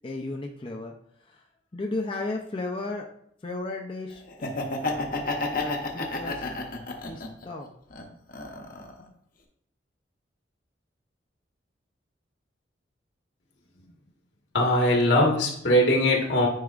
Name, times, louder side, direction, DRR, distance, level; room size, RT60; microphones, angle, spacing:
voice 1, 0.0-0.9 1.3-1.4 1.7-3.1 3.4-4.2 5.5-6.5 7.1-7.7, left 2 dB, 30° left, 1 dB, 0.5 m, -34 dB
Laughter, 4.3-7.4 7.9-9.0, left 3 dB, 50° left, 0.8 m, -31 dB
voice 2, 14.5-16.5, left 1 dB, 80° left, -1 dB, 1.6 m, -21 dB
9.3 x 4.7 x 2.4 m, 0.70 s
head